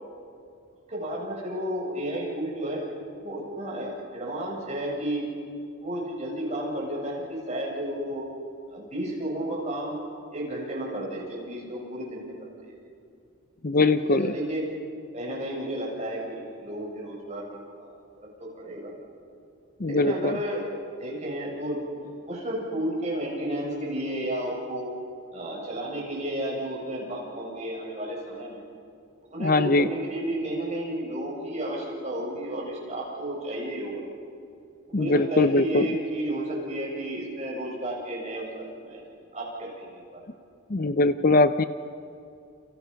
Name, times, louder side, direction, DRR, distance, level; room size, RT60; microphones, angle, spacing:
voice 1, 0.9-2.8 3.2-5.3 5.8-8.3 8.7-10.0 10.3-12.8 13.8-14.7 15.1-17.9 18.4-18.9 19.9-20.7 21.0-24.9 25.3-28.6 29.2-34.0 34.9-39.0 39.3-40.3, right 1 dB, 30° right, -3 dB, 7.9 m, -32 dB
voice 2, 13.6-14.3 19.8-20.4 29.4-29.9 34.9-35.9 40.7-41.6, left 2 dB, 40° left, 11 dB, 0.6 m, -21 dB
30.0 x 28.0 x 5.9 m, 2.5 s
head